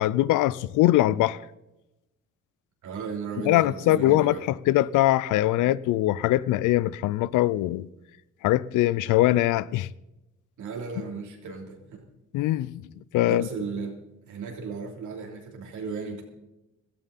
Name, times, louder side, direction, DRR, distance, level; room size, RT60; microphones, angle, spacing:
voice 1, 0.0-1.4 3.4-7.9 8.4-9.9 12.3-12.8 13.1-13.5, left 15 dB, 90° left, 0.5 m, -22 dB
voice 2, 2.8-4.5 5.6-5.7 10.6-11.8 13.2-14.0 14.3-16.2, right 5 dB, 75° right, 3.2 m, -35 dB
16.5 x 13.0 x 4.2 m
cardioid pair, 90°, 30 cm